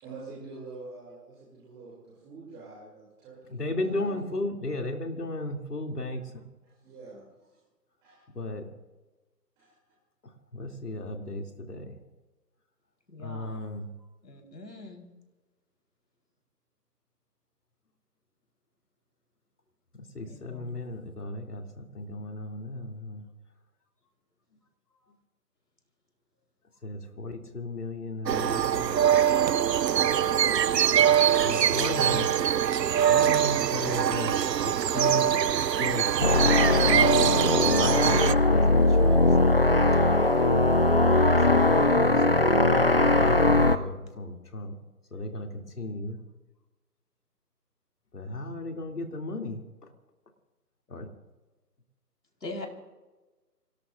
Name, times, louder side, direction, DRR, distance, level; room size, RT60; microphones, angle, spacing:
voice 1, 0.0-4.1 6.1-6.2 6.6-7.6 8.0-8.2 9.6-9.9, right 3 dB, 10° right, 2.9 m, -46 dB
voice 2, 3.5-6.2 8.3-8.7 10.5-12.0 13.2-13.9 19.9-23.2 26.8-29.0 31.4-32.5 33.0-35.3 35.6-39.3 41.4-44.8 45.1-46.2 48.1-49.6 50.9-51.1, left 2 dB, 65° left, 2.9 m, -35 dB
voice 3, 13.1-13.7 14.2-15.1 20.2-20.8 52.4-52.7, left 2 dB, 80° left, 4.4 m, -42 dB
sound 1, 28.3-38.3, right 9 dB, 75° right, 0.6 m, -23 dB
sound 2, 36.2-43.8, left 2 dB, 35° left, 0.6 m, -21 dB
26.0 x 18.0 x 2.6 m
figure-of-eight pair, 160°, 50 cm